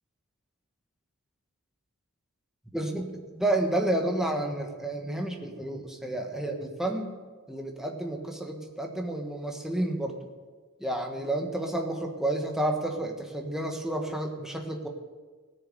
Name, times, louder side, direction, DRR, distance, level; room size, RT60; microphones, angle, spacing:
voice 1, 2.7-7.2 7.5-10.3 10.8-14.9, right 1 dB, ahead, 2 dB, 1.5 m, -30 dB
18.0 x 6.9 x 7.9 m, 1.4 s
head